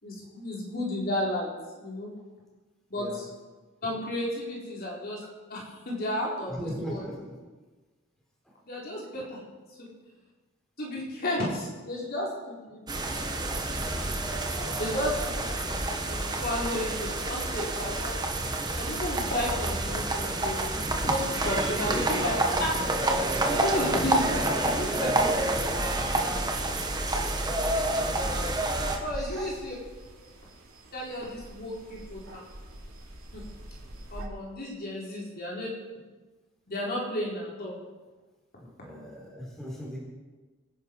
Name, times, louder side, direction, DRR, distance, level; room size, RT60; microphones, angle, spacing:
voice 1, 0.0-1.5 1.8-2.1 2.9-3.3 3.8-5.2 5.5-7.1 8.7-9.4 9.8-9.9 10.8-12.8 13.9-14.3 14.8-15.8 16.1-18.2 18.8-20.8 21.0-22.8 23.5-26.0 29.0-29.8 30.9-32.2 33.3-33.4 34.1-35.7 36.7-37.7, left 1 dB, 45° left, -4 dB, 4.5 m, -33 dB
voice 2, 2.9-3.3 4.6-4.7 6.5-7.4 8.4-8.5 14.1-14.4 27.1-27.3 28.0-28.6 29.1-29.5 35.4-35.5 38.6-40.0, equal, ahead, -4 dB, 4.3 m, -40 dB
sound 1, 12.9-29.0, right 2 dB, 20° right, 1.4 m, -28 dB
sound 2, 23.1-34.3, right 1 dB, 75° right, 3.3 m, -44 dB
25.0 x 10.5 x 4.8 m, 1.3 s
head